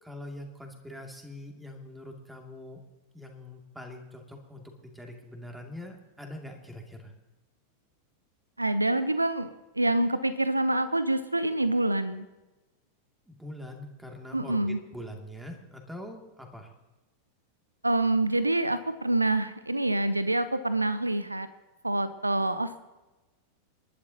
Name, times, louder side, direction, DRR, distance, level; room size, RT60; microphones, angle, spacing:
voice 1, 0.0-2.8 3.1-7.1 13.3-16.7, left 1 dB, 5° right, 2 dB, 2.6 m, -43 dB
voice 2, 8.6-9.5 9.8-12.3 14.3-14.8 17.8-21.5 21.8-22.8, right 2 dB, 85° right, 14 dB, 0.7 m, -26 dB
28.0 x 12.0 x 2.9 m, 1.1 s
figure-of-eight pair, 90°, 0 cm